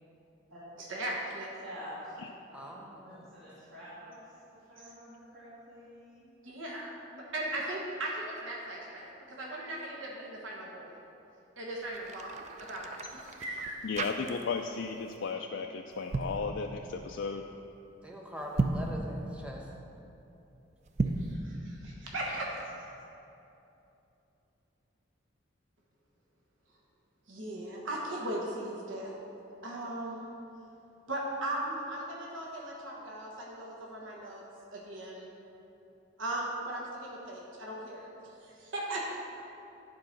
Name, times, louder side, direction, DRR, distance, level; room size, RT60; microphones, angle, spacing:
voice 1, 0.8-1.5 4.8-4.9 6.4-10.9 11.6-13.8 21.2-22.6 27.3-29.1 29.6-30.3 31.1-34.4 34.7-35.3 36.2-39.0, right 1 dB, 85° right, -3 dB, 1.2 m, -38 dB
voice 2, 1.6-2.1 2.5-4.2 4.5-6.4, equal, 65° right, -11 dB, 2.1 m, -48 dB
voice 3, 2.5-3.3 18.0-19.7, equal, 5° right, -1 dB, 0.9 m, -43 dB
sound 1, 11.8-14.7 15.0-15.3 15.9-16.4 18.4-19.0 20.9-21.4, right 3 dB, 35° right, 0.4 m, -34 dB
voice 4, 13.8-17.4, left 5 dB, 70° left, 3 dB, 0.4 m, -35 dB
10.5 x 4.8 x 5.9 m, 2.9 s
head